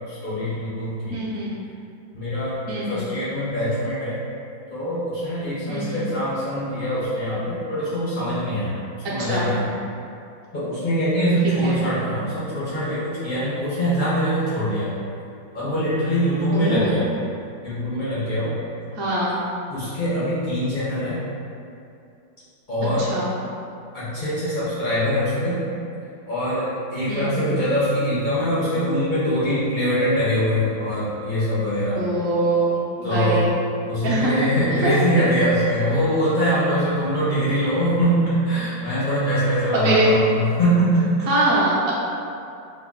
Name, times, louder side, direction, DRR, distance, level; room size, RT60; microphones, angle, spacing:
voice 1, 0.1-1.2 2.1-4.2 4.7-9.7 10.5-14.9 15.5-17.1 17.6-18.6 19.7-21.2 22.7-23.1 23.9-25.6 26.3-32.0 33.0-33.5 33.9-41.1, equal, 55° left, -11 dB, 0.5 m, -23 dB
voice 2, 1.1-1.5 2.7-3.0 5.7-6.1 9.2-9.5 11.6-11.7 16.5-16.9 18.9-19.4 23.0-23.3 27.1-27.5 32.0-33.5 34.0-34.3 34.8-34.9 39.7-40.1 41.3-41.9, right 2 dB, 55° right, -7 dB, 1.0 m, -23 dB
3.5 x 2.1 x 3.7 m, 2.6 s
omnidirectional pair, 2.1 m